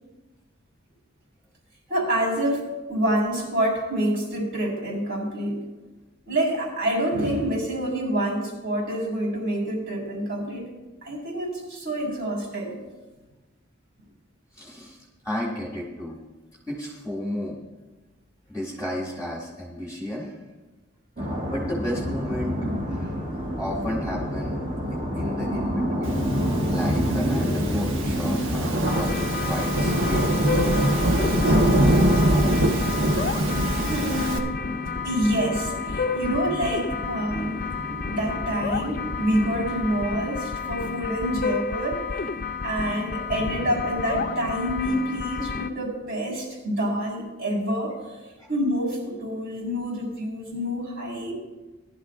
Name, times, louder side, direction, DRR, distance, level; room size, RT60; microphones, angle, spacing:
voice 1, 1.9-5.6 6.3-10.7 11.0-12.7 22.2-22.3 33.8-34.6 35.0-37.6 38.1-42.0 42.6-48.2 48.5-51.3, right 1 dB, 55° right, -3 dB, 4.6 m, -27 dB
voice 2, 14.5-16.2 16.7-17.6 18.5-20.4 21.5-23.1 23.6-24.6 25.1-26.2 26.7-30.3 30.6-31.6 48.4-48.5, left 1 dB, 5° right, -6 dB, 1.8 m, -33 dB
sound 1, 21.2-40.0, equal, 40° right, 1.7 m, -30 dB
Thunderstorm / Rain, 26.7-34.4, right 1 dB, 75° right, 1.2 m, -23 dB
sound 2, 28.8-45.7, left 5 dB, 45° left, 0.5 m, -31 dB
19.5 x 11.5 x 2.5 m, 1.2 s
head